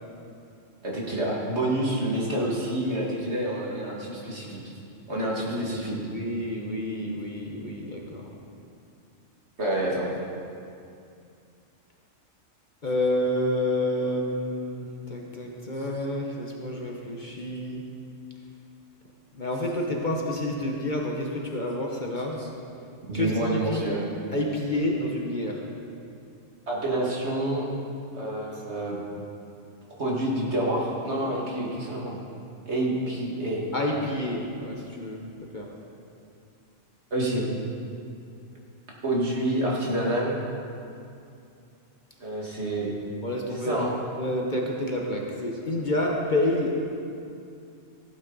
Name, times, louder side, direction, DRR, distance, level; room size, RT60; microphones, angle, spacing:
voice 1, 0.8-4.6 5.1-6.0 9.6-10.1 22.4-22.5 23.1-24.1 26.7-27.7 28.1-29.0 30.0-32.1 32.7-33.6 37.1-37.5 39.0-40.4 42.2-42.9 43.5-44.0, right 1 dB, 60° right, -4 dB, 2.3 m, -28 dB
voice 2, 5.2-8.3 12.8-17.9 19.3-22.4 23.1-23.9 24.3-25.6 33.7-35.2 35.5-35.7 43.2-43.9 44.2-46.8, left 1 dB, 40° left, 0 dB, 1.1 m, -29 dB
15.5 x 8.9 x 4.0 m, 2.5 s
omnidirectional pair, 1.3 m